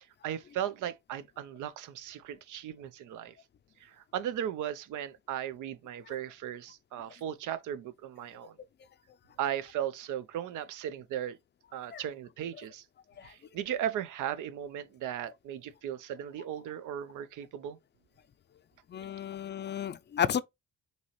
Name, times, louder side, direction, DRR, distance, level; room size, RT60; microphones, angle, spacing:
voice 1, 0.0-3.4 3.8-8.5 9.4-11.4 11.7-12.8 13.2-17.8, right 10 dB, 80° right, 0.6 m, -37 dB
voice 2, 18.9-20.4, left 9 dB, 35° left, 0.4 m, -32 dB
5.4 x 3.0 x 3.0 m
cardioid pair, 90°, 30 cm